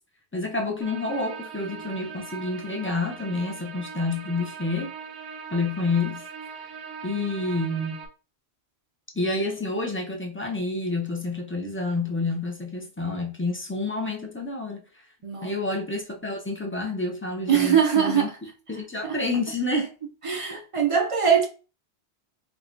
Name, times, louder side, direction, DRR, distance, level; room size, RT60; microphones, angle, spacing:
voice 1, 0.3-4.9 5.5-6.2 7.0-8.0 9.1-14.8 15.4-18.3 18.7-19.9 20.5-20.6, left 2 dB, 20° left, 0.3 m, -28 dB
sound 1, 0.8-8.1, right 6 dB, 75° right, 1.0 m, -40 dB
voice 2, 17.5-18.4 19.0-19.2 20.2-21.5, right 7 dB, 50° right, 0.4 m, -22 dB
4.6 x 2.1 x 2.5 m
omnidirectional pair, 1.1 m